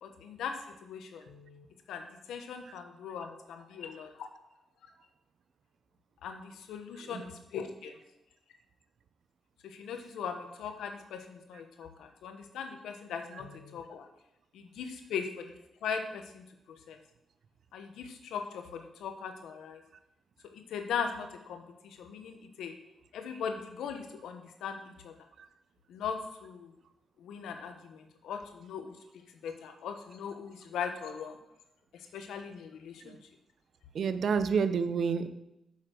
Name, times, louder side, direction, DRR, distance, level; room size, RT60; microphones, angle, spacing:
voice 1, 0.0-4.3 6.2-8.0 9.6-14.1 14.5-15.5 15.8-17.0 17.7-19.8 20.4-22.8 23.1-25.2 25.9-26.7 27.2-29.0 29.4-31.4 31.9-33.2, left 6 dB, 90° left, 6 dB, 1.3 m, -39 dB
voice 2, 33.9-35.3, right 6 dB, 55° right, 11 dB, 0.8 m, -29 dB
9.4 x 7.3 x 6.5 m, 0.86 s
cardioid pair, 135°, 0 cm